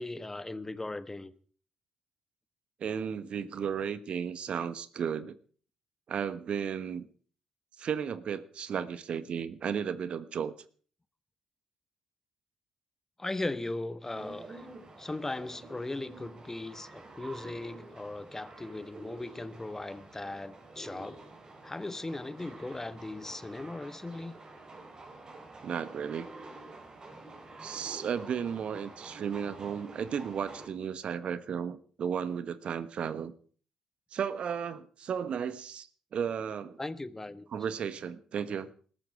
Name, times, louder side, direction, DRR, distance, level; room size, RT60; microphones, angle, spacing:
voice 1, 0.0-1.3 13.2-14.7 15.0-21.2 21.6-24.4 36.8-37.5, left 2 dB, 20° left, 1.5 m, -38 dB
voice 2, 2.8-5.4 6.1-7.1 7.8-10.5 25.6-26.3 27.6-33.3 34.1-36.8 37.5-38.7, right 7 dB, 55° right, 1.2 m, -34 dB
sound 1, 14.1-30.7, right 2 dB, 35° right, 4.7 m, -49 dB
20.0 x 13.5 x 4.8 m
hypercardioid pair, 45°, 2 cm